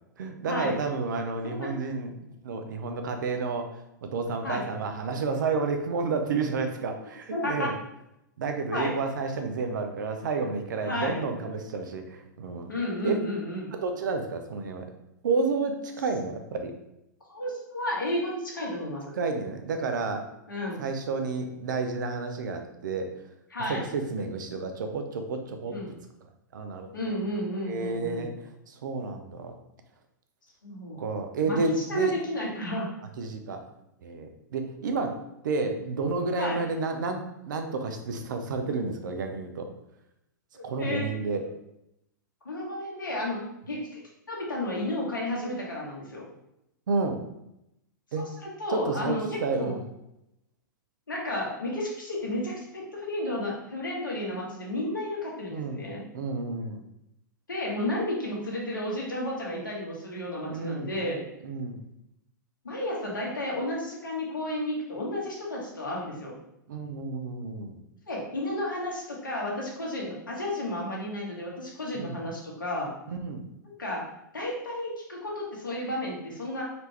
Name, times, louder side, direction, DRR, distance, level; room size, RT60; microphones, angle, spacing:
voice 1, 0.2-2.1 2.4-3.7 4.0-7.7 8.4-12.7 13.0-13.1 13.7-14.9 15.2-16.7 19.1-20.3 20.8-23.2 23.7-25.7 26.5-27.1 27.6-28.3 28.7-29.5 31.0-32.2 33.2-33.6 34.0-35.2 35.4-39.7 40.6-41.4 46.9-47.2 48.1-48.3 48.7-49.8 55.5-55.8 56.1-56.8 60.5-60.9 61.4-61.8 66.7-67.8 71.9-72.2 73.1-73.4, right 4 dB, 75° right, 6 dB, 0.6 m, -30 dB
voice 2, 7.3-7.7 8.7-9.0 10.9-11.2 12.7-13.7 17.3-19.0 20.5-20.9 23.5-23.8 25.7-25.9 26.9-28.2 30.6-31.0 31.4-31.6 31.9-32.9 36.4-36.6 40.5-41.1 42.4-44.0 44.3-46.2 48.2-49.8 51.1-56.0 57.5-61.2 62.6-66.4 68.1-72.9 73.8-74.0 74.3-76.6, left 1 dB, 90° left, -3 dB, 1.3 m, -32 dB
4.2 x 2.8 x 3.2 m, 0.84 s
hypercardioid pair, 110°, 10 cm